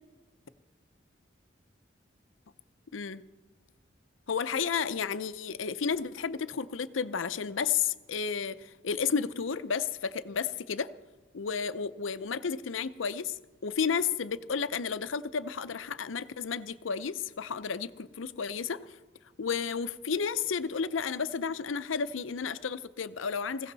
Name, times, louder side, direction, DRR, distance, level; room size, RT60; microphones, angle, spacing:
voice 1, 4.3-10.9 11.3-13.4 13.6-19.0 19.4-23.7, left 6 dB, 90° left, 0.6 m, -32 dB
21.0 x 16.0 x 4.0 m
head